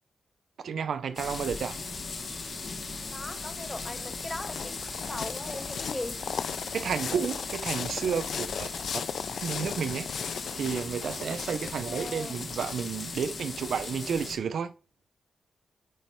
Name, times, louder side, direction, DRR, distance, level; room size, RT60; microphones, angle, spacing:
voice 1, 0.6-1.8 6.7-8.7 9.4-14.7, right 7 dB, 70° right, 0.5 m, -31 dB
sound 1, 1.2-14.4, left 4 dB, 55° left, 1.5 m, -38 dB
sound 2, 1.4-8.8, right 3 dB, 55° right, 3.0 m, -51 dB
voice 2, 3.1-6.2 11.8-12.4, left 1 dB, 15° left, 0.6 m, -39 dB
sound 3, 3.3-14.2, left 7 dB, 75° left, 0.3 m, -38 dB
9.0 x 3.1 x 4.4 m
wide cardioid pair, 120°, 0 cm